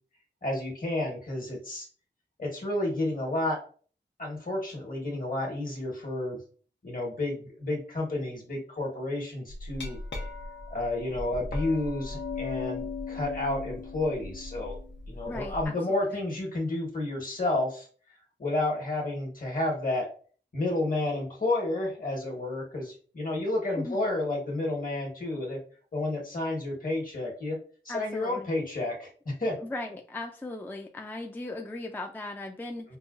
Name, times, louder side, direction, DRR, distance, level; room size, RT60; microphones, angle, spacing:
voice 1, 0.4-1.9 2.4-3.6 4.2-6.4 6.8-10.0 10.7-14.8 15.1-17.9 18.4-20.1 20.5-25.6 25.9-27.6 27.9-29.6 32.9-33.0, left 2 dB, 50° left, -2 dB, 1.3 m, -31 dB
Glass, 9.5-15.6, left 3 dB, 75° left, 0.7 m, -37 dB
voice 2, 15.3-16.2 23.8-24.1 27.9-28.5 29.6-33.0, left 2 dB, 10° left, 2 dB, 0.3 m, -38 dB
5.3 x 2.2 x 2.4 m, 0.42 s
wide cardioid pair, 85°, 19 cm